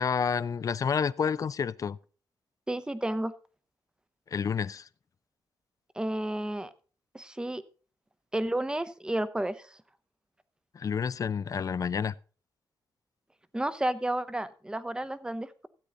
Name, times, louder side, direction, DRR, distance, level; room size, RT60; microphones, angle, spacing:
voice 1, 0.0-2.0 4.3-4.9 10.7-12.1, left 6 dB, 45° left, 0.4 m, -29 dB
voice 2, 2.7-3.3 6.0-6.7 7.1-7.6 8.3-9.6 13.5-15.7, right 1 dB, 10° right, 0.7 m, -31 dB
13.5 x 8.3 x 3.9 m
cardioid pair, 105°, 8 cm